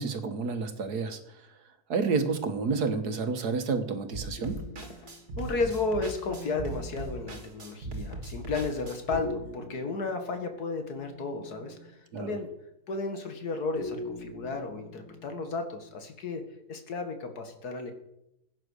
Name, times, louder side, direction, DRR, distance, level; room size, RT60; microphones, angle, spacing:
voice 1, 0.0-1.5 1.9-4.6 12.1-12.4, right 4 dB, 90° right, 8 dB, 1.9 m, -30 dB
sound 1, 4.1-9.2, right 2 dB, 50° right, 2.5 m, -39 dB
sound 2, 4.4-7.5 9.1-12.0 13.8-15.9, left 1 dB, 50° left, 4.8 m, -44 dB
voice 2, 5.4-12.5 12.9-16.4 16.7-17.9, left 3 dB, 80° left, 6 dB, 2.3 m, -33 dB
16.0 x 8.8 x 6.5 m, 0.84 s
omnidirectional pair, 1.6 m